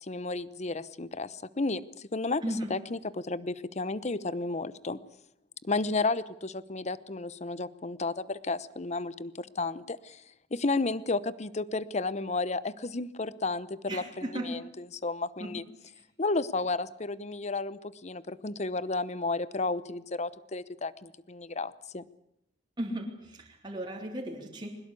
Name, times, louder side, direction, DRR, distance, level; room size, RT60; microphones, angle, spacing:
voice 1, 0.0-5.0 5.6-10.2 10.5-15.6 16.2-22.0, left 3 dB, 40° left, 17 dB, 0.9 m, -32 dB
voice 2, 13.9-14.5 15.4-15.5 22.8-24.8, right 1 dB, 25° right, 0 dB, 3.8 m, -36 dB
22.0 x 20.5 x 8.4 m, 0.74 s
head